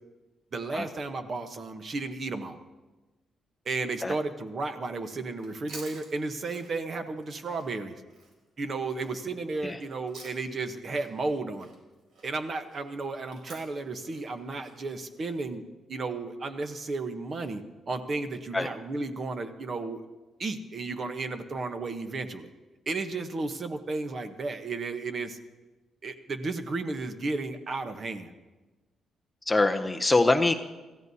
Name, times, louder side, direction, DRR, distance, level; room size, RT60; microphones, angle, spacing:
voice 1, 0.5-2.6 3.6-8.0 8.6-11.7 12.2-15.6 15.9-20.0 20.4-22.5 22.9-25.4 26.0-28.3, right 3 dB, 35° right, 8 dB, 0.9 m, -33 dB
Chewing mastication, 5.3-10.7 10.9-15.3, right 3 dB, 70° right, 4.4 m, -51 dB
voice 2, 29.5-30.5, left 2 dB, 10° left, 5 dB, 0.6 m, -23 dB
27.0 x 15.0 x 2.8 m, 1.2 s
cardioid pair, 175°, 0 cm